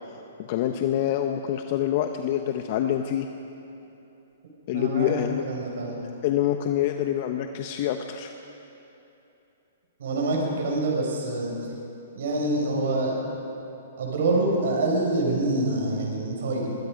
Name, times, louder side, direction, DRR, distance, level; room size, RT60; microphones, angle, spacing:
voice 1, 0.4-3.3 4.7-5.4 6.2-8.3, left 11 dB, 45° left, 6 dB, 1.0 m, -26 dB
voice 2, 4.7-5.1 5.4-6.0 10.0-11.7 12.1-13.2 14.0-16.8, right 2 dB, 70° right, -1 dB, 6.3 m, -26 dB
24.0 x 21.5 x 5.3 m, 2.9 s
hypercardioid pair, 145°, 0 cm